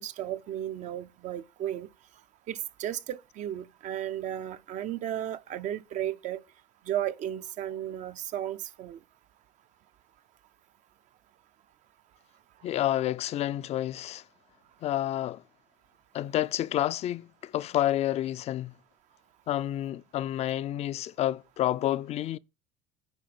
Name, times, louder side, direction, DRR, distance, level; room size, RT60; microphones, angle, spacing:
voice 1, 0.0-1.9 2.5-6.4 6.9-9.0, right 11 dB, 60° right, 0.6 m, -34 dB
voice 2, 12.6-14.2 14.8-15.4 16.1-18.8 19.5-22.4, left 13 dB, 50° left, 0.4 m, -29 dB
9.8 x 3.9 x 6.1 m
cardioid pair, 115°, 14 cm